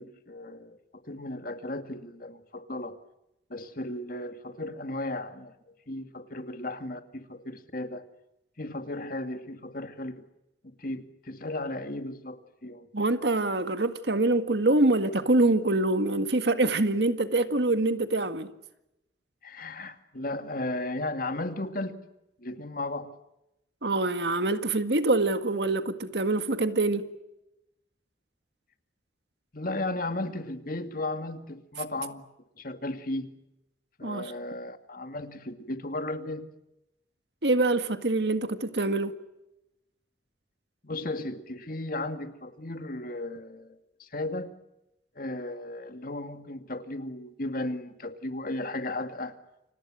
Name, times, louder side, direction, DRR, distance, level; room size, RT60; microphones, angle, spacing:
voice 1, 0.0-3.0 3.5-8.1 8.6-10.2 10.8-12.9 19.4-22.0 22.4-23.1 29.5-32.2 32.6-33.3 34.0-36.5 40.8-44.5 45.2-49.3, left 2 dB, 50° left, 2.3 m, -35 dB
voice 2, 12.9-18.5 23.8-27.1 34.0-34.3 37.4-39.1, right 2 dB, 70° right, 1.9 m, -25 dB
30.0 x 26.0 x 6.4 m
head